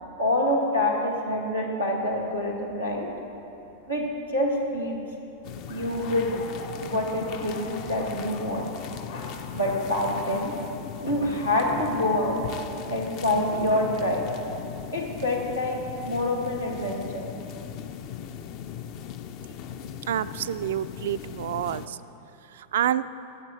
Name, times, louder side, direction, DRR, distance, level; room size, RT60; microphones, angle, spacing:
voice 1, 0.2-3.1 3.9-5.0 5.7-6.3 6.8-8.7 9.5-10.5 11.0-12.4 12.9-14.2 14.9-15.8 16.1-17.3, left 1 dB, 85° left, -2 dB, 1.8 m, -26 dB
sound 1, 2.1-10.6, left 3 dB, 60° left, 1.3 m, -44 dB
sound 2, 5.4-21.9, left 8 dB, 45° left, 0.5 m, -39 dB
voice 2, 20.1-22.0 22.5-23.1, right 11 dB, 60° right, 13 dB, 0.3 m, -28 dB
10.0 x 7.4 x 8.2 m, 2.9 s
figure-of-eight pair, 90°, 0 cm